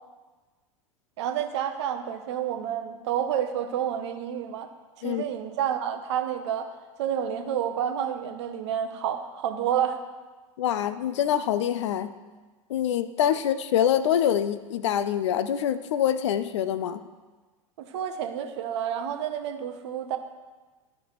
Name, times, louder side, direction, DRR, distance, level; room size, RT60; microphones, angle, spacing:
voice 1, 1.2-4.7 5.0-6.7 7.0-10.0 17.8-20.2, right 9 dB, 55° right, 7 dB, 0.8 m, -29 dB
voice 2, 10.6-12.2 12.7-17.0, left 10 dB, 55° left, 13 dB, 0.4 m, -25 dB
12.0 x 5.2 x 3.1 m, 1.3 s
figure-of-eight pair, 85°, 18 cm